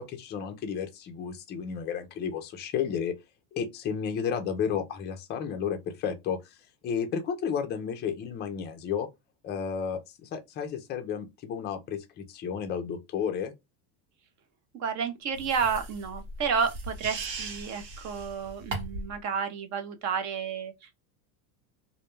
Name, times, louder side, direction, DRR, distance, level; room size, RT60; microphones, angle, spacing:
voice 1, 0.0-3.1 3.5-6.5 6.8-9.1 9.4-13.5, left 7 dB, 25° left, 0.4 m, -32 dB
voice 2, 14.7-20.9, right 6 dB, 35° right, 0.6 m, -31 dB
sound 1, 15.4-19.2, right 3 dB, 70° right, 1.0 m, -38 dB
2.2 x 2.1 x 3.0 m
supercardioid pair, 115°, 49 cm